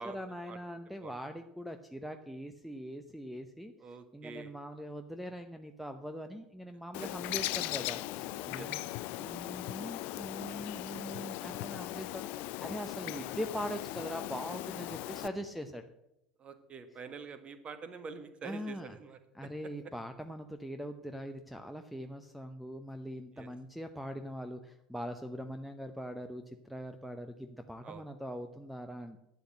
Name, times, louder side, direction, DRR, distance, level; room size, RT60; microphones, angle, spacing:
voice 1, 0.0-3.7 4.1-8.8 9.2-15.8 18.4-19.0 19.3-29.2, equal, ahead, 8 dB, 0.8 m, -42 dB
voice 2, 3.8-4.5 7.0-7.1 8.5-8.7 13.0-13.1 16.4-19.2 23.3-23.5 27.8-28.1, right 5 dB, 30° right, 10 dB, 1.5 m, -46 dB
Bird, 6.9-15.3, left 17 dB, 50° left, 0.5 m, -39 dB
11.5 x 8.1 x 7.8 m, 0.86 s
figure-of-eight pair, 70°, 4 cm